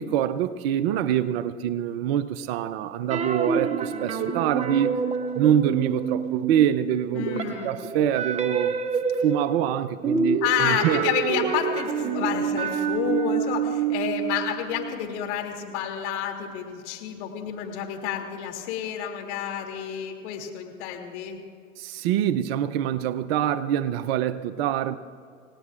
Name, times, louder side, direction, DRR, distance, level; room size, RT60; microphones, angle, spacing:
voice 1, 0.0-5.0 5.3-8.7 9.2-11.0 21.8-25.0, right 10 dB, 45° right, 0.7 m, -25 dB
sound 1, 3.1-6.8 7.1-15.0, right 6 dB, 15° right, 0.9 m, -28 dB
voice 2, 7.1-7.8 10.4-21.4, left 9 dB, 55° left, 2.9 m, -29 dB
28.5 x 18.5 x 2.5 m
hypercardioid pair, 110°, 42 cm